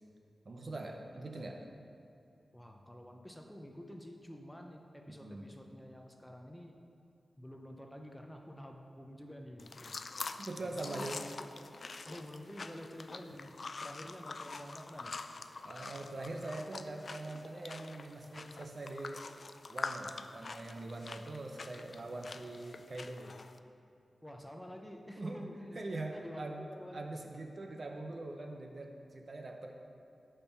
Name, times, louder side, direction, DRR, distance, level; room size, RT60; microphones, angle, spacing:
voice 1, 0.4-1.7 5.1-5.5 10.4-11.3 13.3-13.4 15.6-19.2 19.7-23.4 25.2-25.5 25.7-26.7 26.9-29.7, right 2 dB, 45° right, 2 dB, 0.8 m, -43 dB
voice 2, 2.5-6.7 7.4-10.0 10.6-11.5 12.1-13.5 13.8-15.1 24.2-25.8 26.1-27.1, equal, 5° left, 2 dB, 0.6 m, -49 dB
sound 1, 9.6-23.6, left 3 dB, 50° left, 0.3 m, -45 dB
8.8 x 4.5 x 6.9 m, 2.5 s
wide cardioid pair, 125°, 0 cm